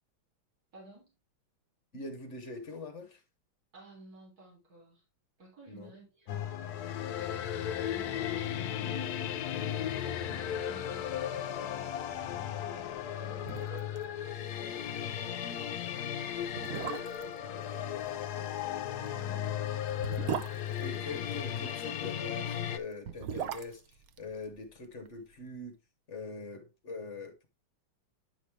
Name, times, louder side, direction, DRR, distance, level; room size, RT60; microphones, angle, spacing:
voice 1, 0.7-1.1 3.7-5.0 5.4-7.1 7.9-9.4 9.9-13.9 14.3-15.5 16.6-17.4 17.6-17.9 18.3-19.7 20.6-21.0, right 2 dB, 45° right, 3.9 m, -54 dB
voice 2, 1.9-3.2 5.7-5.9 16.7-17.0 20.8-23.8 24.2-25.8 26.1-27.5, left 3 dB, 45° left, 1.2 m, -43 dB
sound 1, 6.3-22.8, left 10 dB, 70° left, 0.9 m, -35 dB
sound 2, 13.0-13.1 13.4-14.0 14.3-14.4 14.8-15.0 15.7-15.8 16.4-17.4 18.9-21.6 22.8-25.1 25.3-25.4, right 9 dB, 75° right, 0.8 m, -39 dB
9.1 x 5.1 x 3.2 m
omnidirectional pair, 2.2 m